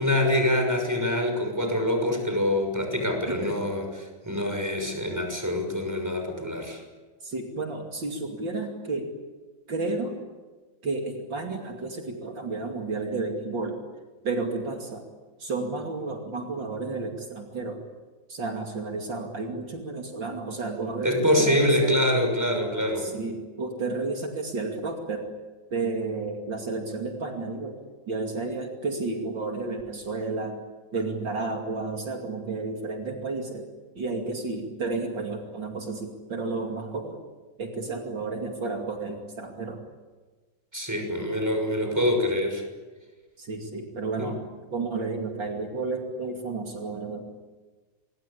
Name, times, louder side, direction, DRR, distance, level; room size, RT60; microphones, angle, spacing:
voice 1, 0.0-6.8 21.0-23.1 40.7-42.6 44.2-44.3, left 1 dB, 10° right, 4 dB, 6.2 m, -25 dB
voice 2, 3.3-3.6 7.2-9.1 9.7-10.2 10.8-13.8 14.2-15.0 15.4-17.8 18.3-22.0 23.0-25.3 25.7-27.8 28.1-30.6 30.9-33.7 34.0-37.2 37.6-39.8 43.4-47.3, right 3 dB, 70° right, 2 dB, 3.3 m, -32 dB
27.0 x 23.5 x 8.5 m, 1.3 s
omnidirectional pair, 2.1 m